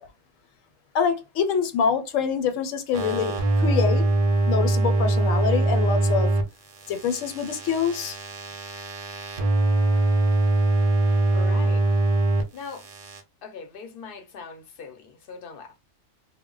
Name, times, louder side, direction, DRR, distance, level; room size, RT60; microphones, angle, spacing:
voice 1, 0.9-4.0 4.5-6.3 6.9-8.2, left 7 dB, 80° left, 1.0 m, -25 dB
sound 1, 2.9-6.4 6.7-12.4 12.7-13.2, right 2 dB, 55° right, 0.4 m, -23 dB
voice 2, 11.3-11.9 12.5-12.9 13.4-15.8, left 5 dB, 55° left, 0.6 m, -40 dB
2.1 x 2.1 x 3.7 m
omnidirectional pair, 1.3 m